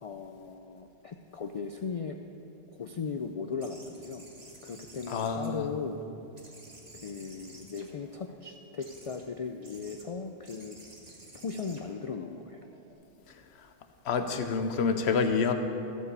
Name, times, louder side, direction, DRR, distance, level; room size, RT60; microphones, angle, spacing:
voice 1, 0.0-2.2 2.7-4.2 4.6-6.0 7.0-10.8 11.4-12.6, left 5 dB, 60° left, 5 dB, 0.3 m, -37 dB
sound 1, 3.6-6.0 6.4-8.3 8.8-9.2 9.6-10.0 10.4-12.9, right 2 dB, 40° right, 1.3 m, -52 dB
voice 2, 5.1-5.7 14.0-15.5, left 5 dB, 90° left, 6 dB, 1.0 m, -27 dB
14.5 x 4.8 x 6.7 m, 2.8 s
omnidirectional pair, 1.1 m